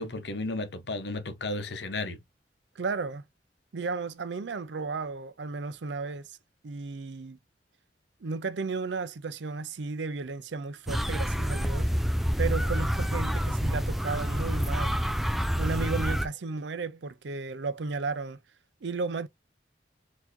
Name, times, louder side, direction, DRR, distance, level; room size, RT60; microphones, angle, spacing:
voice 1, 0.0-2.2, left 2 dB, 70° left, 0.9 m, -33 dB
voice 2, 2.8-3.2 3.7-6.4 6.6-7.4 8.2-11.9 12.4-15.0 15.6-18.4 18.8-19.3, right 4 dB, 75° right, 0.5 m, -34 dB
sound 1, 10.9-16.3, equal, ahead, 0.3 m, -28 dB
4.4 x 2.8 x 2.6 m
head